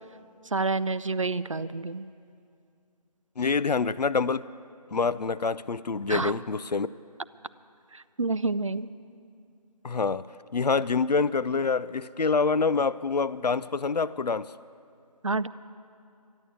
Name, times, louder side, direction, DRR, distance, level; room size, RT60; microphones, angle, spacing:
voice 1, 0.5-2.1 6.1-6.3 7.9-8.9 15.2-15.5, right 3 dB, 50° right, 16 dB, 0.4 m, -28 dB
voice 2, 3.4-4.4 4.9-6.9 9.8-10.2 10.5-14.5, left 4 dB, 80° left, 17 dB, 0.5 m, -26 dB
12.5 x 10.5 x 8.4 m, 2.4 s
figure-of-eight pair, 165°, 20 cm